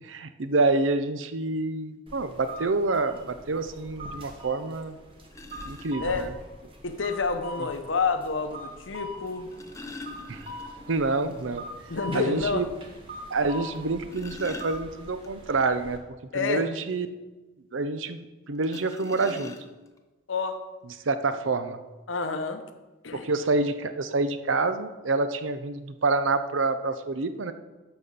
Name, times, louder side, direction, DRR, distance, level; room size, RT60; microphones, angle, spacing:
voice 1, 0.0-5.0 5.6-6.3 10.3-10.5 10.9-11.7 12.1-12.6 13.3-16.0 16.3-17.1 17.7-19.5 21.1-21.8 23.2-27.5, right 3 dB, 85° right, 10 dB, 0.7 m, -27 dB
sound 1, 2.1-16.0, equal, 30° right, 1.3 m, -43 dB
sound 2, 5.3-6.0 7.3-7.4 9.2-11.0 11.3-11.4 11.8-11.9 12.4-12.5 13.8-15.3 18.6-20.0 20.9-21.0 21.3-21.5, left 3 dB, 15° left, 0.6 m, -43 dB
voice 2, 6.8-9.5 11.9-12.7 16.3-16.7 20.3-20.6 22.1-22.6 23.0-23.3, left 4 dB, 80° left, 8 dB, 0.9 m, -28 dB
11.5 x 4.2 x 6.8 m, 1.2 s
head